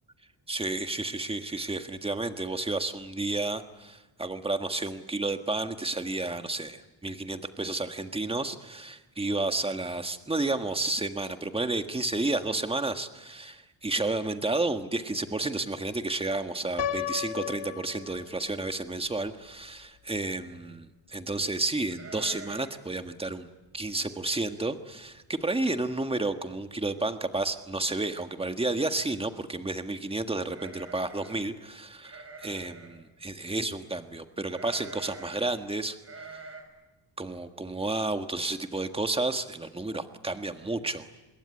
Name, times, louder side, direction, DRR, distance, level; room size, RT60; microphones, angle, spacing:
voice 1, 0.5-23.5 23.7-36.0 36.3-36.4 37.2-41.1, right 2 dB, 15° right, 7 dB, 1.6 m, -31 dB
Piano, 16.8-18.7, left 9 dB, 65° left, 2.1 m, -34 dB
sound 1, 21.9-22.9 23.1-23.2 23.7-24.0 24.5-24.6 24.9-25.4 25.7-25.8 27.0-27.1 27.4-27.8 30.4-31.5 32.0-33.0 34.5-35.5 36.0-36.6, right 3 dB, 30° right, 5.7 m, -46 dB
27.0 x 21.0 x 9.9 m, 1.1 s
wide cardioid pair, 135°, 44 cm